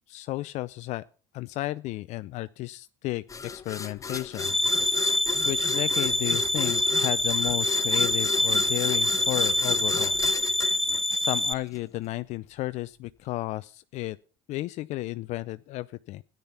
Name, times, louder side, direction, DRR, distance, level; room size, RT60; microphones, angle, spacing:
voice 1, 0.1-1.0 1.3-4.5 5.4-10.2 11.2-14.2 14.5-16.2, left 18 dB, 65° left, 0.5 m, -33 dB
sound 1, 3.3-11.8, left 5 dB, 25° left, 0.9 m, -35 dB
sound 2, 4.4-11.5, left 1 dB, ahead, 1.4 m, -25 dB
13.5 x 10.5 x 5.7 m
hypercardioid pair, 75°, 13 cm